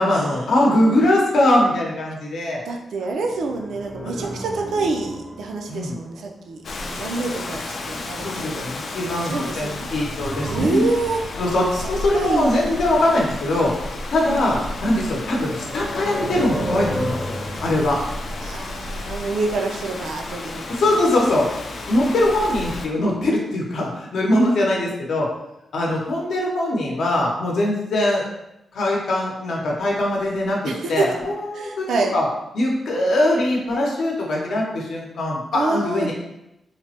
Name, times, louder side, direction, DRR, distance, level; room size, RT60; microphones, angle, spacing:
voice 1, 0.0-2.6 3.0-3.1 4.2-4.3 5.7-6.0 8.2-10.8 11.4-13.7 14.1-18.0 20.7-21.5 21.8-25.3 25.7-28.2 28.7-32.3 32.5-36.1, left 1 dB, 70° left, -2 dB, 0.7 m, -21 dB
voice 2, 2.7-8.7 9.2-9.9 10.5-11.2 11.8-12.6 14.3-14.6 18.4-20.9 24.8-25.0 30.7-31.1 31.5-32.2 35.5-36.1, right 3 dB, 80° right, 2 dB, 0.4 m, -27 dB
sound 1, 3.2-6.3 9.7-11.4 13.7-19.8 20.1-20.2, equal, 10° right, 0.5 m, -33 dB
Rain, 6.6-22.9, left 2 dB, 55° left, 0.3 m, -33 dB
3.2 x 2.0 x 2.7 m, 0.87 s
wide cardioid pair, 145°, 0 cm